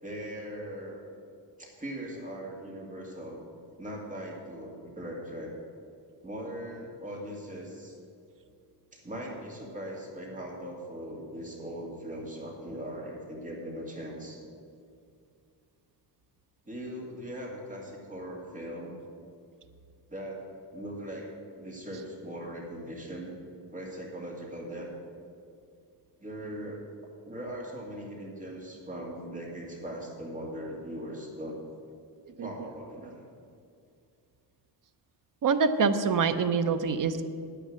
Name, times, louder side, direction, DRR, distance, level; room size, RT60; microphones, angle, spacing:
voice 1, 0.0-1.0 1.6-3.4 3.8-5.5 6.2-8.0 8.9-14.4 16.7-18.9 20.1-20.4 20.7-21.3 21.6-23.3 23.7-24.9 26.2-26.8 27.2-31.6 32.4-33.2, equal, 20° right, -2 dB, 2.3 m, -40 dB
voice 2, 35.4-37.2, right 5 dB, 50° right, 10 dB, 0.8 m, -25 dB
10.0 x 9.9 x 7.5 m, 2.4 s
wide cardioid pair, 150°, 42 cm